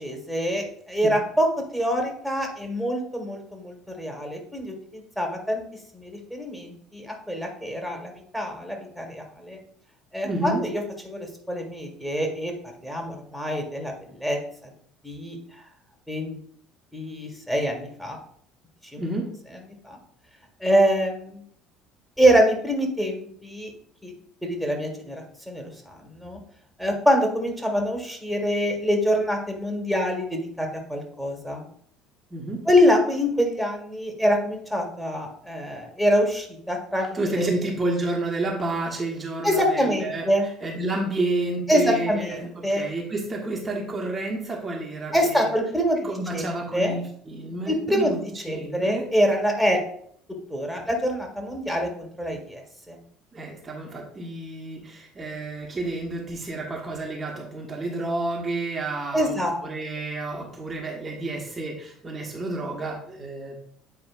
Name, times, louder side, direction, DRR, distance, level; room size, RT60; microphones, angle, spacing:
voice 1, 0.0-1.5 1.7-5.6 5.9-9.6 10.1-10.6 11.1-12.5 12.8-14.4 15.0-15.4 16.1-16.4 16.9-18.2 18.9-19.0 19.8-20.0 20.6-21.5 22.2-23.7 24.0-24.1 24.4-26.4 26.8-31.6 32.7-37.5 39.4-40.5 41.7-42.8 45.1-46.5 46.7-46.9 47.7-48.1 48.4-49.8 50.5-52.6 52.9-53.0 59.1-59.6, equal, ahead, 2 dB, 1.5 m, -25 dB
voice 2, 10.2-10.6 19.0-19.3 32.3-32.7 37.1-45.5 46.0-48.2 48.5-49.1 53.3-59.4 59.6-63.6, right 2 dB, 25° right, -1 dB, 1.2 m, -30 dB
8.0 x 4.8 x 2.5 m, 0.63 s
figure-of-eight pair, 60°, 0 cm